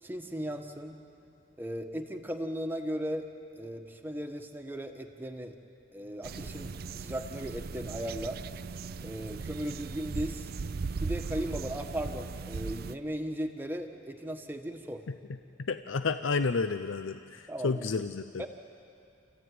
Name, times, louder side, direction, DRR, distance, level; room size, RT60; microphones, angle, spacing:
voice 1, 0.0-1.0 1.6-3.3 3.6-5.6 5.9-8.4 9.0-10.5 11.0-15.0 17.5-17.9 18.4-18.5, equal, 10° right, 4 dB, 1.3 m, -37 dB
sound 1, 6.2-12.9, right 4 dB, 50° right, 0.5 m, -38 dB
voice 2, 15.6-18.2, left 4 dB, 85° left, 10 dB, 0.6 m, -30 dB
28.0 x 15.5 x 9.4 m, 2.6 s
head